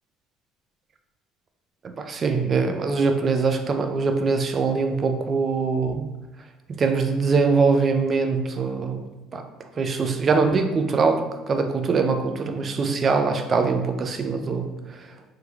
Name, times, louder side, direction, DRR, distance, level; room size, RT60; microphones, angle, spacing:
voice 1, 2.1-6.1 6.8-9.0 9.3-9.4 9.8-11.2 11.5-14.7, right 4 dB, 40° right, 6 dB, 0.4 m, -22 dB
3.1 x 2.3 x 3.3 m, 1.1 s
supercardioid pair, 75°, 0 cm